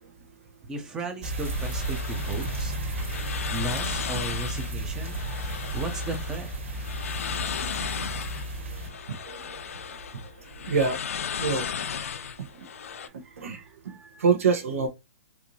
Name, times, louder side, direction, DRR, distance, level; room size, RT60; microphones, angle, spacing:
voice 1, 0.7-5.2 5.7-6.5 13.0-14.2, right 2 dB, 10° right, 0.5 m, -36 dB
sound 1, 1.2-8.9, right 1 dB, 65° right, 1.6 m, -33 dB
sound 2, 1.3-13.1, left 7 dB, 85° left, 0.5 m, -36 dB
voice 2, 10.7-11.0 11.4-11.6 13.4-13.6 14.2-14.9, right 5 dB, 90° right, 1.0 m, -23 dB
4.5 x 2.6 x 2.7 m
hypercardioid pair, 175°, 7 cm